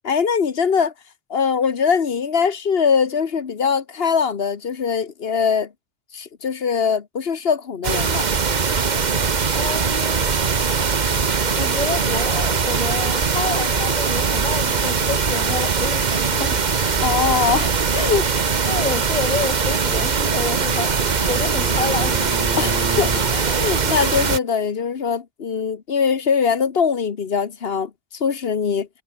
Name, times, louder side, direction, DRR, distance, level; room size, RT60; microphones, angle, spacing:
voice 1, 0.0-0.9 1.3-5.7 6.1-8.3 17.0-18.5 22.6-28.9, left 6 dB, 55° left, 1.5 m, -22 dB
sound 1, 7.8-24.4, right 5 dB, 40° right, 1.2 m, -21 dB
voice 2, 9.5-10.3 11.6-16.6 18.7-21.0 21.3-22.2, left 4 dB, 10° left, 0.4 m, -29 dB
Bowed string instrument, 19.6-23.4, right 1 dB, 10° right, 3.4 m, -33 dB
omnidirectional pair, 1.2 m